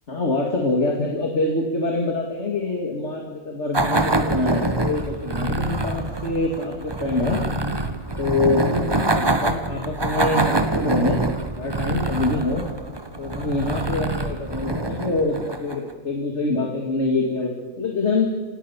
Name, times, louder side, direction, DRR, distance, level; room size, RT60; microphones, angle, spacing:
voice 1, 0.1-7.4 8.2-11.2 11.6-12.7 13.2-17.5 17.8-18.3, left 2 dB, 50° left, 1 dB, 2.6 m, -25 dB
sound 1, 3.7-15.9, right 2 dB, 20° right, 1.2 m, -25 dB
26.0 x 18.0 x 7.2 m, 1.5 s
omnidirectional pair, 1.5 m